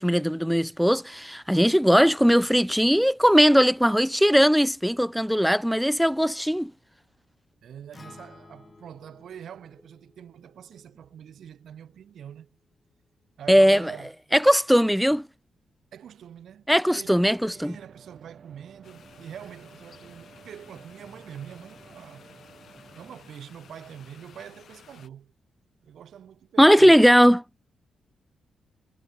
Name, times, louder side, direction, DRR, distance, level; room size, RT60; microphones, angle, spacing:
voice 1, 0.0-6.7 13.5-13.9 14.4-15.3 16.7-17.8 26.6-27.4, equal, ahead, 0.4 m, -19 dB
voice 2, 7.6-12.6 13.4-14.1 15.9-22.3 22.9-25.3 25.8-27.0, right 9 dB, 75° right, 6.7 m, -45 dB
Acoustic guitar, 7.9-12.2, left 3 dB, 25° left, 3.1 m, -54 dB
sound 1, 16.9-23.2, right 6 dB, 50° right, 4.9 m, -52 dB
sound 2, 18.8-25.1, left 8 dB, 65° left, 6.2 m, -53 dB
cardioid pair, 90°, 0 cm